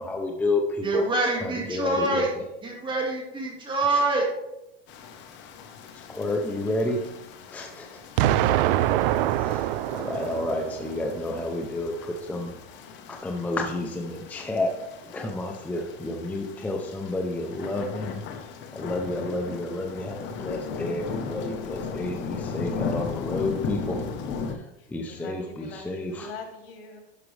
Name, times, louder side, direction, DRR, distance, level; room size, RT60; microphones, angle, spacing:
voice 1, 0.0-1.0 1.4-2.2 3.9-4.0 6.1-7.0 7.5-8.0 9.3-12.5 13.1-14.7 15.0-24.1 24.4-26.3, left 2 dB, 5° left, 2 dB, 0.5 m, -30 dB
voice 2, 0.8-2.3 2.6-4.3, right 2 dB, 15° right, 0 dB, 1.9 m, -25 dB
sound 1, 4.9-24.6, left 5 dB, 40° left, 1.0 m, -37 dB
Explosion, 8.2-11.1, right 13 dB, 65° right, 0.5 m, -24 dB
voice 3, 24.8-27.0, left 3 dB, 85° left, 1 dB, 2.7 m, -42 dB
11.5 x 6.0 x 3.3 m, 0.90 s
supercardioid pair, 145°, 30 cm